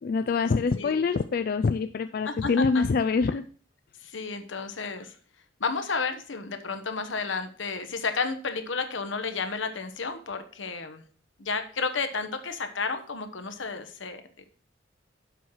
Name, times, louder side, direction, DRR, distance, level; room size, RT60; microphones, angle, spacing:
voice 1, 0.0-3.5, left 4 dB, 50° left, 10 dB, 0.3 m, -25 dB
voice 2, 2.2-2.8 4.0-5.1 5.6-11.0 11.4-14.4, left 4 dB, 80° left, 8 dB, 1.1 m, -32 dB
7.3 x 5.6 x 4.6 m, 0.43 s
head